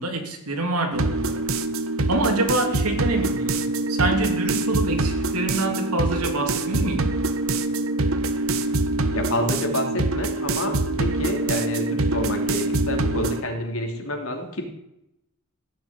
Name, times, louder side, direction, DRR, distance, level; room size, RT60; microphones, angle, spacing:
voice 1, 0.0-1.4 2.1-7.1, right 2 dB, 85° right, 4 dB, 2.9 m, -26 dB
sound 1, 0.9-13.4, right 2 dB, 65° right, 1.1 m, -24 dB
voice 2, 9.1-14.7, left 1 dB, 65° left, 3 dB, 3.0 m, -28 dB
16.0 x 7.2 x 9.8 m, 0.83 s
head